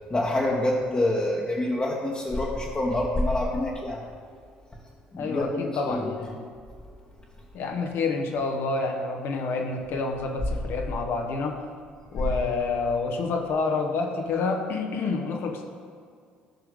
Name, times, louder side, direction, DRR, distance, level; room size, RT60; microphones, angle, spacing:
voice 1, 0.1-4.0 5.1-6.1, left 1 dB, 25° left, -4 dB, 1.3 m, -26 dB
voice 2, 5.2-6.4 7.5-11.6 12.1-15.6, left 4 dB, 55° left, 3 dB, 1.1 m, -28 dB
13.0 x 6.1 x 3.5 m, 2.2 s
figure-of-eight pair, 50°, 5 cm